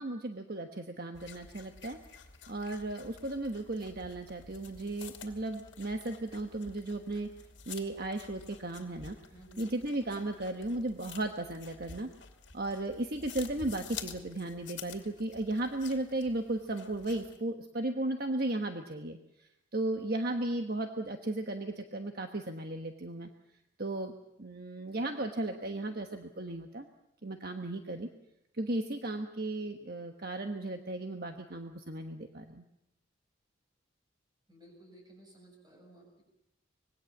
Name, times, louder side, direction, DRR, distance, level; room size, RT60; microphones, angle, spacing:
voice 1, 0.0-2.0 2.5-7.3 7.7-9.2 9.6-12.1 12.5-19.2 19.7-23.3 23.8-24.1 24.4-26.9 27.2-28.1 28.6-32.6, right 2 dB, 50° right, 5 dB, 1.3 m, -35 dB
sound 1, 1.1-17.4, left 6 dB, 65° left, 2.6 m, -50 dB
voice 2, 9.3-9.7 34.5-36.2, right 1 dB, 20° right, 1 dB, 7.5 m, -56 dB
25.5 x 20.5 x 7.3 m, 0.82 s
head